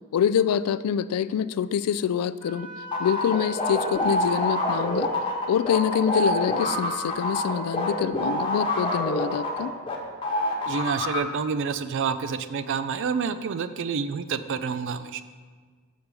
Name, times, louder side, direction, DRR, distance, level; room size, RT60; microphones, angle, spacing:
voice 1, 0.1-2.7 3.0-5.1 5.5-9.7, left 8 dB, 85° left, 16 dB, 0.3 m, -25 dB
Wind instrument woodwind instrument, 2.4-8.2, right 1 dB, 40° right, 1.6 m, -44 dB
sound 1, 2.9-10.0 10.2-11.2, left 1 dB, 25° left, 1.1 m, -26 dB
voice 2, 10.7-15.2, right 6 dB, 60° right, 12 dB, 0.4 m, -28 dB
6.8 x 5.0 x 6.0 m, 1.5 s
head